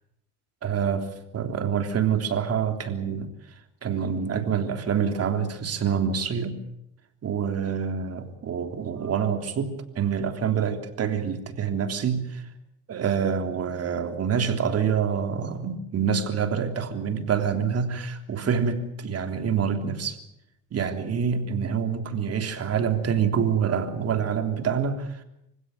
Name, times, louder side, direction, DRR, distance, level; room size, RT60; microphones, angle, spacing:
voice 1, 0.6-6.6 7.2-12.5 12.9-20.2 20.7-25.2, right 7 dB, 50° right, 7 dB, 3.4 m, -26 dB
25.5 x 16.0 x 9.3 m, 0.81 s
cardioid pair, 95°, 33 cm